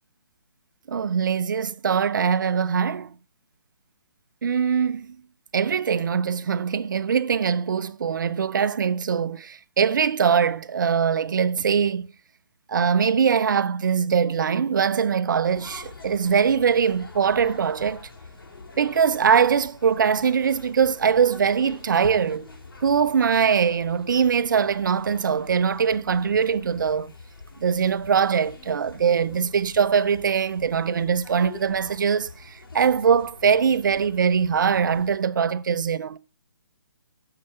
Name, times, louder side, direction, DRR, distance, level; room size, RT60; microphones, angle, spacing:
voice 1, 0.9-3.1 4.4-5.2 5.5-12.1 12.7-18.1 18.8-22.5 22.8-27.1 27.6-36.2, right 7 dB, 60° right, 0.7 m, -22 dB
sound 1, 15.4-35.2, left 3 dB, 80° left, 5.0 m, -45 dB
9.4 x 6.8 x 5.8 m
hypercardioid pair, 155°, 12 cm